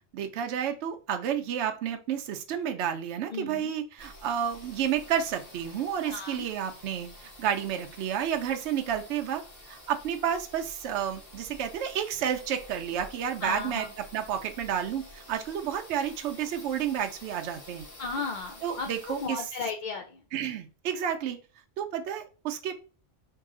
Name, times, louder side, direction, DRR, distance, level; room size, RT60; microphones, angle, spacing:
voice 1, 0.1-9.4 9.7-13.9 14.1-17.9 18.6-19.5 20.3-21.4 21.8-22.7, right 9 dB, 70° right, 5 dB, 0.8 m, -31 dB
voice 2, 3.3-3.7 6.1-6.4 13.4-13.9 18.0-18.9 19.2-20.0, left 4 dB, 60° left, 3 dB, 0.5 m, -34 dB
sound 1, 4.0-19.3, left 1 dB, 80° left, 2.3 m, -49 dB
4.7 x 2.7 x 3.7 m, 0.37 s
omnidirectional pair, 1.3 m